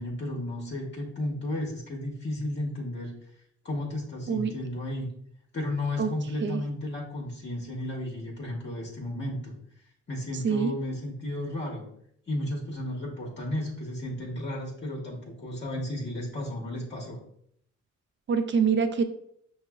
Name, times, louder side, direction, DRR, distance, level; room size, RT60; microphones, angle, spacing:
voice 1, 0.0-3.1 3.6-5.1 5.5-9.6 10.1-11.9 12.3-17.2, left 1 dB, 35° left, -3 dB, 0.8 m, -33 dB
voice 2, 18.3-19.0, right 6 dB, 40° right, 9 dB, 0.4 m, -25 dB
5.6 x 2.1 x 2.3 m, 0.70 s
cardioid pair, 90°, 30 cm